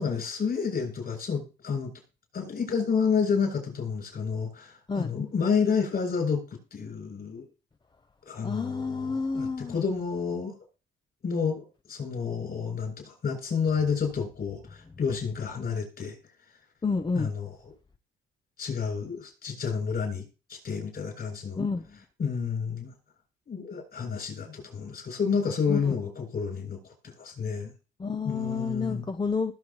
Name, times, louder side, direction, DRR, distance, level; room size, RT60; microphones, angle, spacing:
voice 1, 0.0-1.9 2.3-6.4 6.7-7.5 8.3-10.5 11.2-16.1 17.1-17.7 18.6-20.2 20.5-21.6 22.2-22.9 23.5-26.8 27.0-27.7 28.2-29.0, left 6 dB, 50° left, 7.6 m, -30 dB
voice 2, 8.4-9.8 16.8-17.3 21.6-22.0 25.7-25.9 28.0-29.5, left 4 dB, 20° left, 0.7 m, -30 dB
20.5 x 7.2 x 3.1 m
cardioid pair, 90°, 20 cm